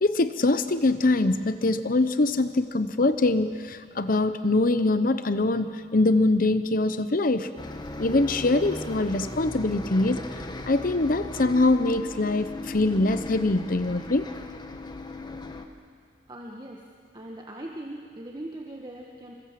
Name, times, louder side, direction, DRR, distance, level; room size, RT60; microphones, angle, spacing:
voice 1, 0.0-7.5 8.0-10.2 10.6-14.3, left 2 dB, 50° left, 11 dB, 0.8 m, -23 dB
Bus, 7.6-15.7, left 1 dB, 25° left, 1.4 m, -37 dB
voice 2, 16.3-16.8 17.1-19.3, right 1 dB, 25° right, -1 dB, 1.7 m, -40 dB
28.0 x 25.0 x 7.6 m, 2.1 s
head